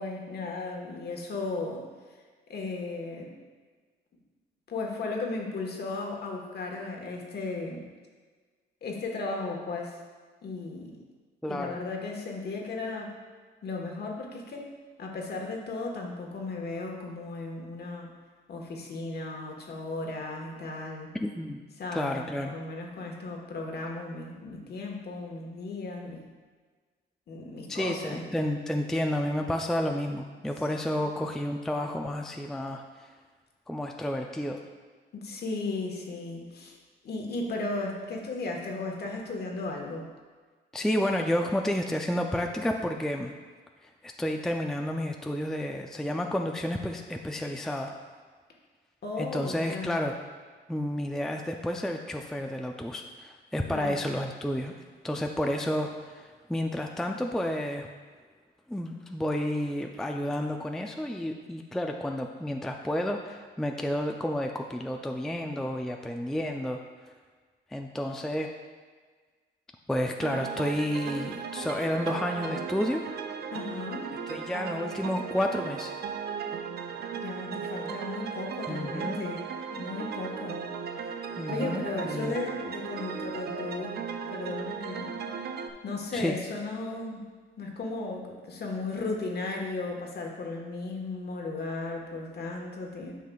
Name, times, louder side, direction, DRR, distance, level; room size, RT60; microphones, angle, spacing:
voice 1, 0.0-1.8 2.5-3.3 4.7-7.8 8.8-10.0 10.4-11.0 11.5-13.1 13.6-14.7 15.0-18.1 18.5-21.1 21.8-26.2 27.3-28.3 35.1-36.8 37.0-40.0 49.0-49.9 53.7-54.1 73.5-74.1 77.1-79.4 79.7-80.6 81.5-84.0 84.3-85.1 85.8-87.2 87.6-93.1, left 3 dB, 55° left, 1 dB, 1.3 m, -35 dB
voice 2, 11.4-11.8 21.2-21.6 21.9-22.6 27.7-32.8 33.7-34.6 40.7-43.3 43.8-47.9 49.2-50.2 50.7-54.7 55.0-57.9 58.7-66.8 67.7-68.5 69.9-73.0 74.3-76.0 78.7-79.2 81.4-82.4 86.1-86.4, left 1 dB, ahead, 3 dB, 0.4 m, -31 dB
sound 1, 70.2-85.7, right 6 dB, 55° right, 0.5 m, -36 dB
9.3 x 5.7 x 2.3 m, 1.5 s
cardioid pair, 90°, 20 cm